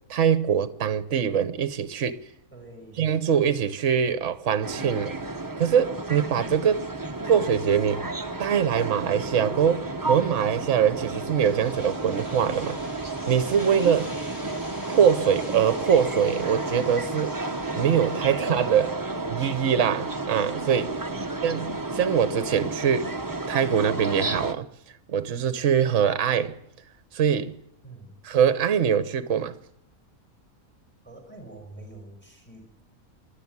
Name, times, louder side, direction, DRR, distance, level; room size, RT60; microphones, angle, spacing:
voice 1, 0.1-2.2 3.0-5.1 5.6-6.9 7.2-8.0 8.4-12.8 13.3-14.1 14.9-17.3 17.7-19.0 19.3-20.9 21.4-23.1 23.5-24.7 25.1-26.5 27.1-27.5 28.3-29.6, right 8 dB, 55° right, 1.2 m, -23 dB
voice 2, 2.5-3.1 14.1-14.6 17.3-17.5 21.1-21.4 27.8-28.2 31.0-32.8, right 2 dB, 5° left, 5.5 m, -46 dB
sound 1, 4.6-24.5, right 2 dB, 15° right, 0.9 m, -32 dB
sound 2, 11.2-19.0, left 2 dB, 65° left, 3.5 m, -47 dB
26.0 x 11.5 x 9.6 m
omnidirectional pair, 1.6 m